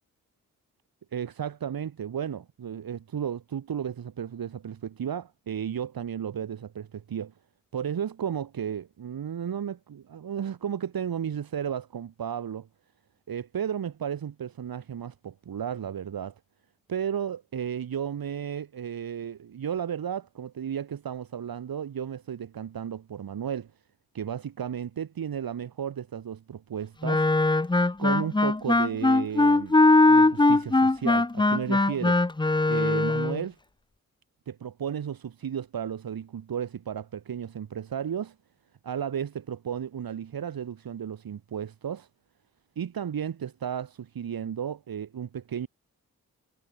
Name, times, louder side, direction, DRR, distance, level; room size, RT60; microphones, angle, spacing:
voice 1, 1.1-7.3 7.7-12.7 13.3-16.4 16.9-23.7 24.1-27.3 28.0-29.8 30.1-32.2 32.7-33.6 34.5-38.4 38.8-42.1 42.8-45.7, right 8 dB, 75° right, 2.4 m, -33 dB
Wind instrument woodwind instrument, 27.0-33.4, left 2 dB, 15° left, 0.7 m, -21 dB
cardioid pair, 45°, 36 cm